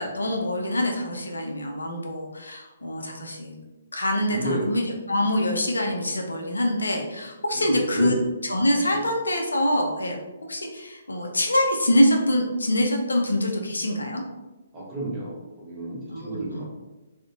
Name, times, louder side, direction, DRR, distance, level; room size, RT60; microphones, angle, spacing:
voice 1, 0.0-3.6 3.9-8.2 8.5-10.2 10.5-14.2 16.1-16.6, left 1 dB, 70° left, 1 dB, 0.4 m, -25 dB
voice 2, 4.3-4.7 7.5-8.2 8.9-9.1 14.7-16.6, right 1 dB, 20° right, -5 dB, 0.7 m, -31 dB
2.4 x 2.0 x 2.6 m, 1.1 s
figure-of-eight pair, 130°, 0 cm